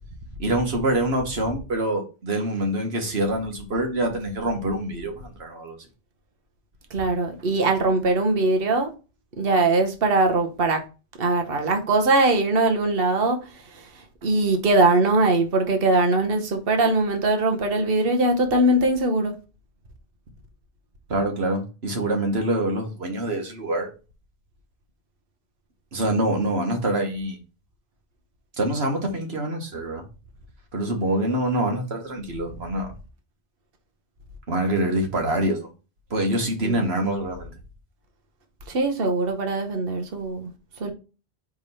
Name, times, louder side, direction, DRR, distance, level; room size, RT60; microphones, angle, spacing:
voice 1, 0.4-5.8 21.1-23.9 25.9-27.4 28.6-30.1 30.7-32.9 34.5-35.7 36.1-37.5, right 1 dB, 85° right, 1.7 m, -25 dB
voice 2, 6.9-8.9 9.4-10.8 11.2-13.4 14.2-19.3 36.6-36.9 38.7-40.5 40.8-40.9, right 2 dB, 65° right, 1.2 m, -21 dB
4.9 x 3.6 x 5.5 m
omnidirectional pair, 1.0 m